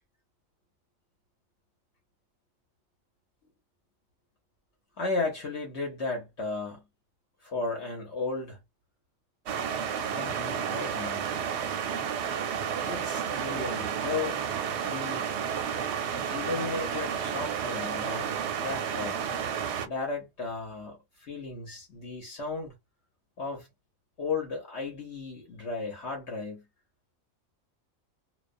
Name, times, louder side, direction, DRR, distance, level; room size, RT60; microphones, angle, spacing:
voice 1, 5.0-6.8 7.4-8.6 10.0-11.3 12.9-14.4 14.8-15.3 16.3-19.2 19.8-22.7 23.4-23.7 24.2-26.6, left 3 dB, 60° left, 1.0 m, -35 dB
sound 1, 9.5-19.9, right 7 dB, 65° right, 0.8 m, -31 dB
2.4 x 2.1 x 2.5 m
omnidirectional pair, 1.4 m